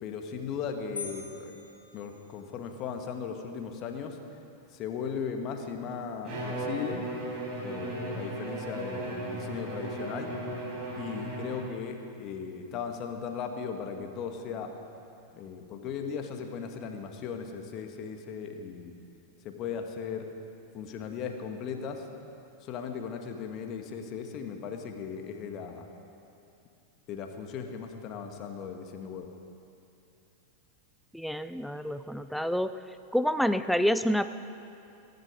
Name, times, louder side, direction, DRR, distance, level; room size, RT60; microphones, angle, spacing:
voice 1, 0.0-1.6 1.9-4.2 4.7-7.1 7.6-10.3 11.0-14.7 15.3-19.0 19.4-20.3 20.7-22.1 22.6-25.9 27.1-29.3, left 6 dB, 35° left, 5 dB, 1.7 m, -37 dB
sound 1, 1.0-2.7, left 5 dB, 75° left, 2.7 m, -44 dB
Bowed string instrument, 6.2-11.9, right 1 dB, 40° right, 5.0 m, -36 dB
voice 2, 31.1-32.7 33.1-34.3, equal, ahead, 12 dB, 0.5 m, -28 dB
24.0 x 11.0 x 5.1 m, 2.6 s
figure-of-eight pair, 90°, 0 cm